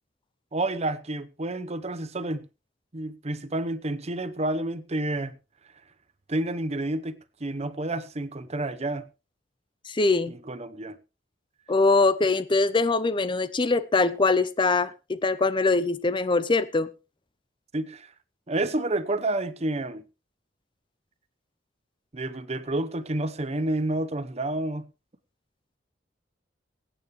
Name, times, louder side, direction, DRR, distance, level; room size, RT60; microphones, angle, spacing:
voice 1, 0.5-2.4 2.9-5.3 6.3-9.0 10.3-11.0 17.7-18.1 18.5-20.0 22.1-24.9, right 2 dB, 35° right, 0.9 m, -29 dB
voice 2, 9.9-10.3 11.7-16.9, left 3 dB, 25° left, 0.5 m, -23 dB
23.0 x 9.0 x 3.1 m
head